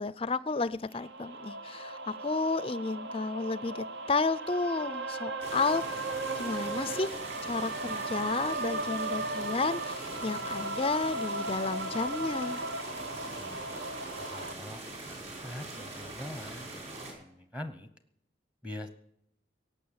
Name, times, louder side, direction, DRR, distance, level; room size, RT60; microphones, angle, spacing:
voice 1, 0.0-7.2 7.4-12.6, left 3 dB, 30° left, 16 dB, 0.5 m, -32 dB
sound 1, 1.0-14.5, right 2 dB, 65° right, 0.7 m, -37 dB
sound 2, 5.4-17.1, right 2 dB, 35° right, 5.4 m, -42 dB
voice 2, 13.4-13.8 14.3-14.8 15.1-17.9 18.6-18.9, left 1 dB, 5° right, 8 dB, 0.9 m, -44 dB
17.5 x 7.0 x 8.7 m, 0.76 s
head